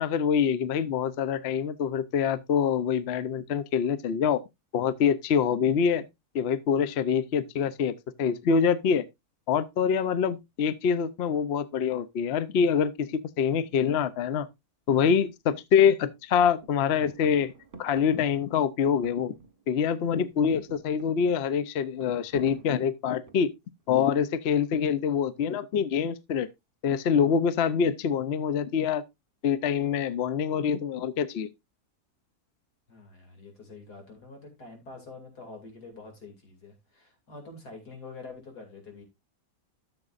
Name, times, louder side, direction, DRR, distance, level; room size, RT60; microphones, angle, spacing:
voice 1, 0.0-4.4 4.7-6.0 6.3-9.0 9.5-14.5 14.9-17.5 17.8-19.3 19.7-23.5 23.9-26.5 26.8-29.0 29.4-31.5, left 7 dB, 55° left, 0.7 m, -25 dB
sound 1, 15.2-15.3 15.7-16.3 16.6-19.8 20.0-23.7 24.6-25.1, right 3 dB, 40° right, 1.2 m, -50 dB
voice 2, 32.9-39.0, left 3 dB, 85° left, 3.3 m, -46 dB
13.5 x 6.9 x 2.5 m
omnidirectional pair, 1.7 m